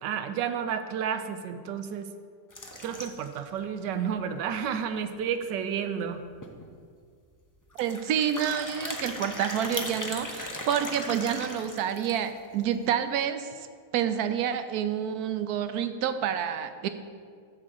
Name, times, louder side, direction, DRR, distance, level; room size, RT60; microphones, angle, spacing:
voice 1, 0.0-2.1 2.8-6.2, right 7 dB, 90° right, 8 dB, 1.2 m, -31 dB
sound 1, 2.5-3.4 3.9-4.0 4.2-4.3 4.7-4.8 6.1-6.2 6.4-6.7 7.7-12.4, left 1 dB, 25° left, 0.4 m, -38 dB
voice 2, 7.8-13.7 13.9-16.9, right 9 dB, 70° right, 9 dB, 1.0 m, -28 dB
11.0 x 3.7 x 7.6 m, 2.2 s
omnidirectional pair, 1.8 m